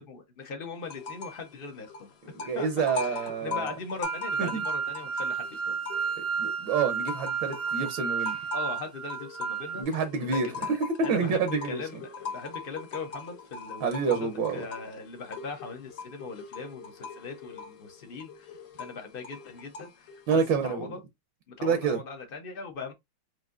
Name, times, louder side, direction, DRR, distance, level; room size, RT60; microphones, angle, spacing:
voice 1, 0.0-2.1 2.5-5.8 8.5-9.8 10.2-10.7 11.0-14.1 14.5-21.0 21.5-22.9, left 4 dB, 75° left, 0.5 m, -40 dB
sound 1, 0.8-1.5 1.7-6.4 6.8-20.6, left 4 dB, 60° left, 0.8 m, -41 dB
voice 2, 2.3-3.7 4.4-4.6 6.4-8.4 9.8-11.8 13.8-14.6 20.3-20.9 21.6-22.0, right 5 dB, 70° right, 1.4 m, -28 dB
sound 2, 4.0-9.8, right 6 dB, 90° right, 1.7 m, -32 dB
6.0 x 2.6 x 2.4 m
omnidirectional pair, 2.2 m